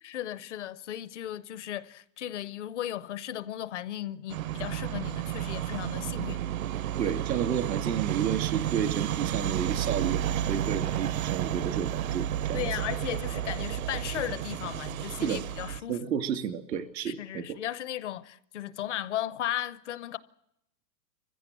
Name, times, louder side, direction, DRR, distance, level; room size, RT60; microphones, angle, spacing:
voice 1, 0.0-6.4 12.5-16.0 17.1-20.2, left 12 dB, 45° left, 0.7 m, -36 dB
sound 1, 4.3-15.8, right 11 dB, 55° right, 0.7 m, -31 dB
voice 2, 7.0-12.7 15.2-15.4 15.9-17.6, right 8 dB, 85° right, 2.7 m, -31 dB
24.0 x 15.5 x 7.7 m
hypercardioid pair, 170°, 50 cm